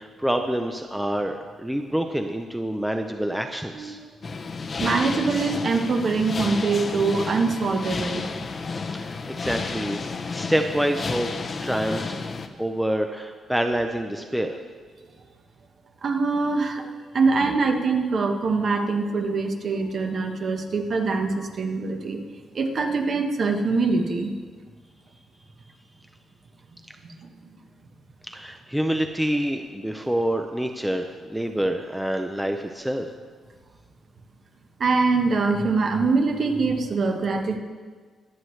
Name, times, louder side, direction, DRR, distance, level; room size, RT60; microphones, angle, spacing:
voice 1, 0.0-4.0 8.9-10.0 10.3-12.2 12.6-14.6 28.3-33.1, right 1 dB, 5° right, 5 dB, 0.5 m, -27 dB
sound 1, 4.2-12.5, left 4 dB, 35° left, 0.7 m, -31 dB
voice 2, 4.8-8.2 16.0-22.2 22.5-24.3 27.0-27.3 34.8-37.6, right 4 dB, 45° right, 4 dB, 1.1 m, -23 dB
22.0 x 7.9 x 3.2 m, 1.5 s
cardioid pair, 150°, 0 cm